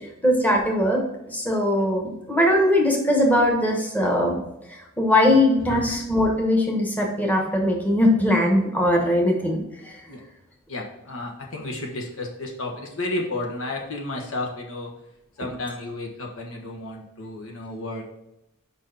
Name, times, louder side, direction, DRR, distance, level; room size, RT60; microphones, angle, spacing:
voice 1, 0.2-1.0 1.3-4.3 5.0-9.6, left 1 dB, 10° left, 0 dB, 1.1 m, -20 dB
voice 2, 5.3-5.9 10.1-10.2 10.7-14.9 15.4-18.0, left 2 dB, 75° left, 0 dB, 1.3 m, -32 dB
5.2 x 4.5 x 5.6 m, 0.87 s
head